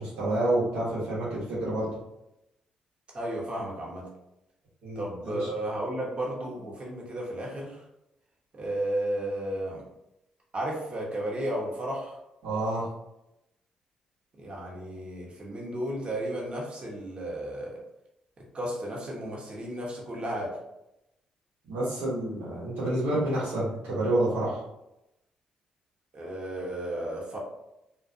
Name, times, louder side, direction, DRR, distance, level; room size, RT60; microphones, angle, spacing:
voice 1, 0.0-2.0 4.8-5.5 12.4-12.9 21.7-24.6, right 1 dB, 75° right, -9 dB, 1.2 m, -28 dB
voice 2, 3.1-4.1 5.0-7.8 8.5-9.8 10.5-12.2 14.4-17.8 18.5-20.5 26.1-27.4, right 1 dB, 40° right, -3 dB, 1.0 m, -33 dB
2.4 x 2.3 x 2.6 m, 0.87 s
hypercardioid pair, 50°, 3 cm